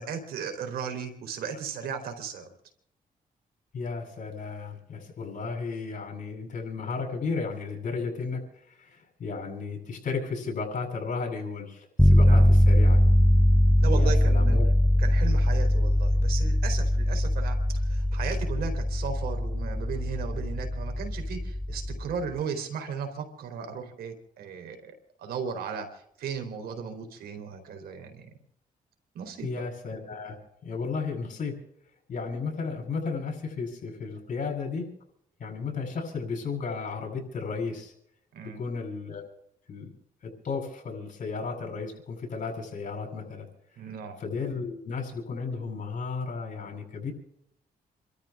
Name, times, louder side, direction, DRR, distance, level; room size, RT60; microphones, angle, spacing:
voice 1, 0.0-2.5 12.2-12.5 13.8-14.6 15.0-24.9 25.2-28.3 29.1-29.6 38.3-38.6 43.8-44.2, right 6 dB, 90° right, 6 dB, 3.4 m, -36 dB
voice 2, 3.7-13.0 13.9-14.7 29.4-31.6 32.1-34.9 35.4-37.9 38.5-39.2 39.7-39.9 40.2-43.5 44.2-47.1, left 4 dB, 60° left, 1 dB, 7.9 m, -34 dB
sound 1, 12.0-22.1, left 1 dB, 5° left, 0.6 m, -22 dB
29.0 x 13.5 x 3.6 m, 0.74 s
cardioid pair, 80°, 15 cm